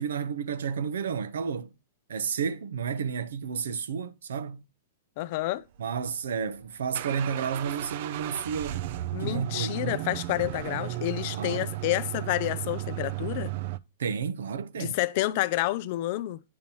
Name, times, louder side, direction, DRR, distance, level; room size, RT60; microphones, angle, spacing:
voice 1, 0.0-1.7 2.1-4.6 5.8-8.8 9.2-9.8 11.4-11.6 14.0-14.9, right 6 dB, 85° right, 0.6 m, -31 dB
voice 2, 5.2-5.6 9.1-13.5 14.8-16.4, left 16 dB, 35° left, 0.4 m, -29 dB
sound 1, 5.9-13.8, right 15 dB, 40° right, 0.3 m, -34 dB
8.6 x 2.9 x 5.3 m
supercardioid pair, 175°, 0 cm